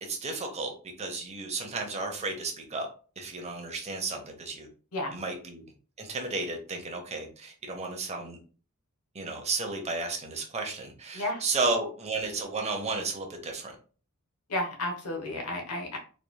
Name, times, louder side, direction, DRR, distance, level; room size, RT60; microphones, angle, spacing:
voice 1, 0.0-2.9 3.2-4.7 5.1-5.6 6.0-8.4 9.1-13.8, right 3 dB, 30° right, 1.0 m, -33 dB
voice 2, 14.5-16.0, left 1 dB, 90° left, 1.2 m, -32 dB
4.1 x 3.3 x 2.3 m
head